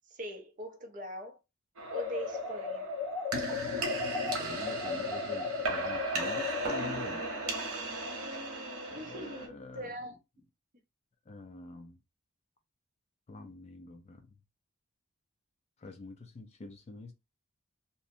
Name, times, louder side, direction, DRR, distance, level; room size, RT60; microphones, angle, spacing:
voice 1, 0.1-1.4 1.9-2.9 8.0-10.2, equal, 35° right, 0.5 m, -42 dB
sound 1, 1.8-9.5, right 2 dB, 90° right, 0.8 m, -37 dB
sound 2, 1.9-6.8, left 5 dB, ahead, 0.9 m, -36 dB
voice 2, 4.4-7.3 8.9-9.9 11.3-12.0 13.3-14.3 15.8-17.1, left 2 dB, 30° left, 0.3 m, -46 dB
2.6 x 2.0 x 2.5 m
head